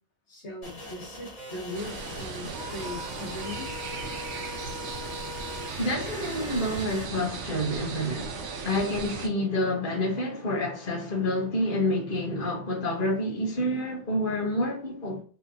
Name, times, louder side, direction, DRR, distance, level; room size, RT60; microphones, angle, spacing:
voice 1, 0.3-3.7, left 2 dB, 80° left, 1.6 m, -39 dB
sound 1, 0.6-7.1, left 2 dB, 30° left, 2.2 m, -41 dB
sound 2, 1.7-9.3, right 4 dB, 85° right, 1.1 m, -37 dB
voice 2, 5.8-8.4 8.6-15.2, left 1 dB, 50° left, 1.6 m, -28 dB
5.1 x 3.2 x 2.8 m
omnidirectional pair, 1.2 m